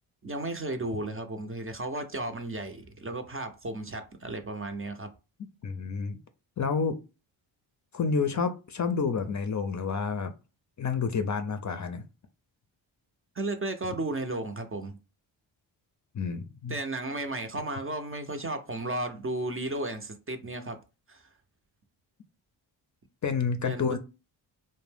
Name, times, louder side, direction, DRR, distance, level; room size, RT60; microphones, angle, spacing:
voice 1, 0.2-5.1 13.4-15.0 16.7-20.8 21.1-21.2 23.6-23.9, right 2 dB, 25° right, 0.6 m, -34 dB
voice 2, 5.6-6.2 6.6-7.0 7.9-10.3 10.8-12.0 16.1-16.8 23.2-24.0, left 5 dB, 35° left, 0.6 m, -29 dB
2.5 x 2.1 x 3.4 m
supercardioid pair, 45°, 50 cm